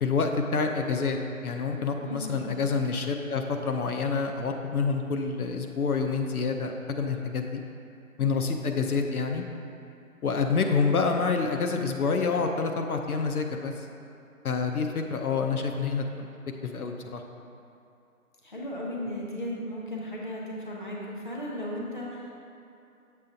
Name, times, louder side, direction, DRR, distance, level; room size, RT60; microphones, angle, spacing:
voice 1, 0.0-7.6 8.2-9.4 10.2-13.9 14.4-16.3 16.6-17.2, left 4 dB, 75° left, 4 dB, 0.7 m, -27 dB
voice 2, 2.1-2.5 18.4-22.3, left 1 dB, 35° left, -4 dB, 0.7 m, -35 dB
7.4 x 6.1 x 2.7 m, 2.6 s
hypercardioid pair, 175°, 44 cm